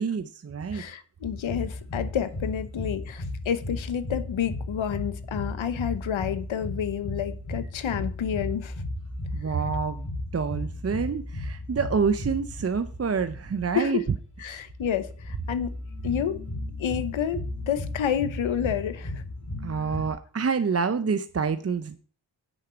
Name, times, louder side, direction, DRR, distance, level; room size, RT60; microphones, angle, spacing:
voice 1, 0.0-0.8 9.3-14.0 14.5-14.6 19.6-22.0, right 5 dB, 30° right, 0.7 m, -27 dB
voice 2, 0.7-8.7 13.7-14.0 14.4-15.8 16.0-16.4 16.8-19.2, left 9 dB, 75° left, 1.1 m, -29 dB
sound 1, 1.2-20.1, left 2 dB, 40° left, 4.7 m, -35 dB
9.0 x 6.5 x 5.1 m
cardioid pair, 45°, 48 cm